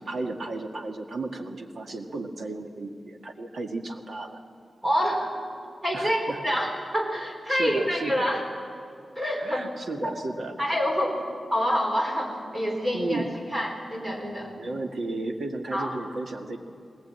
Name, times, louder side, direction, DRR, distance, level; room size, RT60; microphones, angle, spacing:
voice 1, 0.0-4.4 5.9-6.6 7.5-8.4 9.4-10.6 12.9-13.3 14.6-16.6, right 2 dB, 60° right, 4 dB, 1.8 m, -34 dB
voice 2, 4.8-5.3 5.8-6.2 6.4-8.5 9.2-9.6 10.6-11.2 11.5-13.2 13.5-14.5 15.7-15.9, equal, 25° right, 0 dB, 4.2 m, -26 dB
19.5 x 19.0 x 8.9 m, 2.4 s
wide cardioid pair, 125°, 0 cm